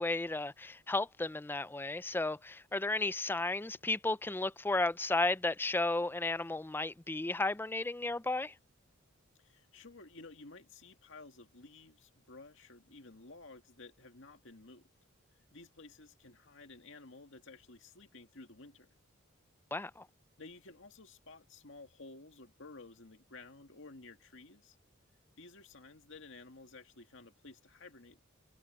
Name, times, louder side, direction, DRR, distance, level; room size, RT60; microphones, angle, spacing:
voice 1, 0.0-8.5 19.7-20.1, left 2 dB, 10° left, 0.4 m, -33 dB
voice 2, 9.4-14.9 15.5-18.9 20.4-24.8 25.4-28.2, left 3 dB, 65° left, 2.3 m, -53 dB
head